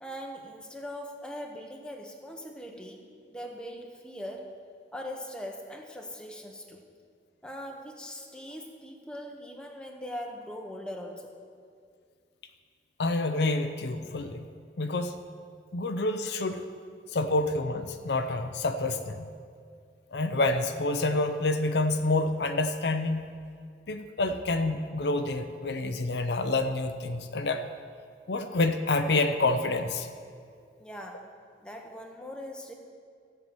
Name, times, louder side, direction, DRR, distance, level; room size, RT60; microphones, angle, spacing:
voice 1, 0.0-4.5 4.9-6.8 7.4-11.4 30.8-31.3 31.6-32.7, equal, 5° left, 1 dB, 1.1 m, -41 dB
voice 2, 13.0-14.5 14.8-15.2 15.7-16.6 17.1-19.3 20.1-23.2 23.9-27.7 28.3-30.1, left 2 dB, 70° left, 7 dB, 0.7 m, -28 dB
15.5 x 5.8 x 7.6 m, 2.2 s
head